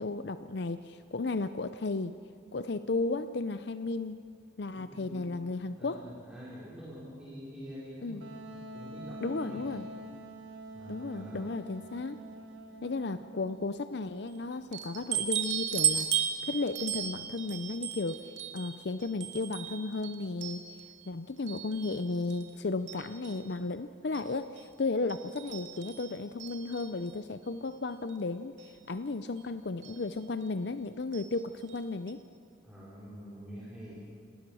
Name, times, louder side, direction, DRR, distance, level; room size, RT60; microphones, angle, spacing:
voice 1, 0.0-2.1 2.5-4.2 4.6-6.1 8.0-8.2 9.2-9.9 10.9-12.2 12.8-16.1 16.4-20.6 21.1-32.2, left 3 dB, 55° left, 11 dB, 0.6 m, -34 dB
voice 2, 4.8-5.3 5.8-9.7 10.7-11.6 32.6-33.9, equal, 5° right, -10 dB, 4.4 m, -46 dB
Wind instrument woodwind instrument, 8.2-13.8, right 1 dB, 85° right, 1.6 m, -45 dB
sound 1, 14.7-21.1 21.5-22.5 22.9-23.5 24.1-24.3 24.6-24.7 25.1-27.1 28.1-28.2 28.6-28.7 29.8-30.0 31.1-31.4 31.7-31.8 32.1-32.2, right 10 dB, 70° right, 2.2 m, -35 dB
28.5 x 19.5 x 6.3 m, 2.2 s
head